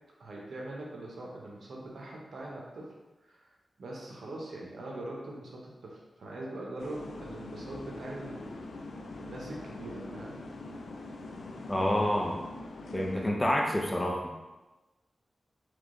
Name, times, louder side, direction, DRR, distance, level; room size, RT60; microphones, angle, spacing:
voice 1, 0.2-2.9 3.2-8.6 9.2-10.4, right 1 dB, 80° right, -2 dB, 0.9 m, -42 dB
sound 1, 6.8-13.3, left 2 dB, 85° left, 0.4 m, -43 dB
voice 2, 11.7-12.4 12.9-14.4, left 1 dB, 20° left, 0 dB, 0.7 m, -28 dB
3.6 x 3.2 x 3.8 m, 1.1 s
wide cardioid pair, 75°, 0 cm